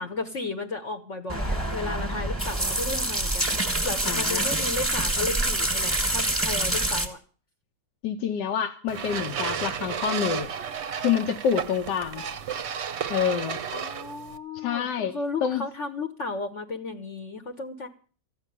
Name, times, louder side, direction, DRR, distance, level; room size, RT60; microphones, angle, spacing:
voice 1, 0.0-7.2 13.7-17.9, left 3 dB, 50° left, 6 dB, 1.2 m, -34 dB
sound 1, 1.3-7.1, right 1 dB, 10° right, 1.5 m, -26 dB
voice 2, 4.1-4.5 8.0-10.5 11.0-12.2 13.1-13.6 14.5-15.1 15.4-15.7, left 8 dB, 85° left, 6 dB, 1.5 m, -27 dB
sound 2, 8.9-14.4, right 7 dB, 55° right, 0.8 m, -32 dB
14.5 x 6.0 x 9.9 m, 0.42 s
omnidirectional pair, 1.8 m